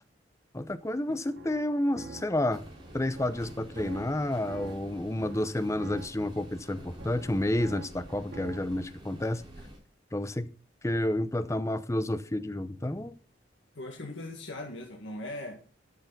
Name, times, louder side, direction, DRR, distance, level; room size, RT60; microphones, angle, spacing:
voice 1, 0.5-2.6 2.9-9.4 10.1-10.5 10.8-13.1, left 1 dB, 15° left, 0.7 m, -30 dB
sound 1, 1.1-8.8, right 3 dB, 70° right, 1.2 m, -47 dB
sound 2, 2.5-9.8, equal, 25° right, 3.5 m, -48 dB
voice 2, 13.8-15.6, left 1 dB, 75° left, 1.8 m, -39 dB
12.5 x 6.7 x 4.0 m
head